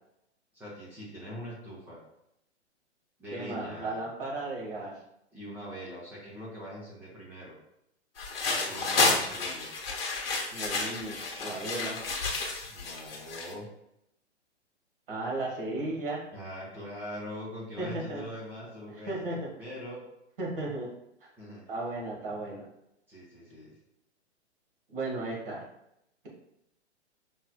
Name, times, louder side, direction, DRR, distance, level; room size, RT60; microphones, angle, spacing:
voice 1, 0.5-2.0 3.2-4.0 5.3-7.5 8.4-9.7 12.7-13.7 16.3-20.0 21.4-21.6 23.1-23.7, equal, 5° right, -7 dB, 0.6 m, -42 dB
voice 2, 3.3-4.9 9.0-9.2 10.5-12.0 15.1-16.2 17.8-18.2 18.9-19.5 20.4-20.9 21.7-22.6 24.9-25.6, right 2 dB, 50° right, -2 dB, 1.4 m, -35 dB
sound 1, 8.2-13.5, left 3 dB, 55° left, 1.0 m, -30 dB
5.3 x 3.2 x 2.2 m, 0.79 s
figure-of-eight pair, 115°, 35 cm